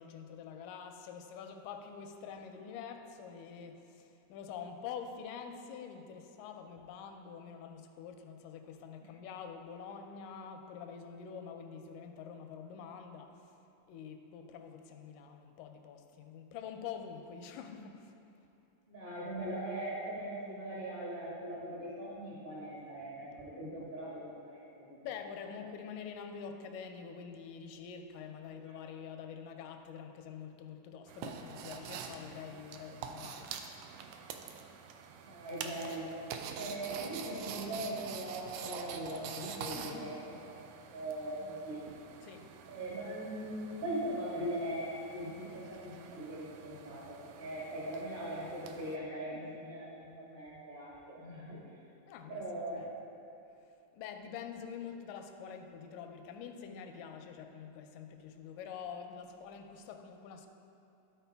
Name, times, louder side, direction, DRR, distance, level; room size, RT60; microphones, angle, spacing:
voice 1, 0.0-13.5 13.9-18.2 25.0-33.5 34.1-34.3 39.7-40.1 42.2-42.5 49.3-49.4 52.1-52.4 53.9-60.5, left 7 dB, 85° left, 5 dB, 2.1 m, -46 dB
voice 2, 18.8-25.0 28.7-28.9 35.2-40.2 40.4-40.6 40.9-41.8 42.7-51.6 52.3-52.9, right 1 dB, 30° right, -7 dB, 1.0 m, -40 dB
sound 1, 31.1-49.0, right 7 dB, 85° right, 1.6 m, -46 dB
13.0 x 4.4 x 3.4 m, 2.8 s
omnidirectional pair, 3.8 m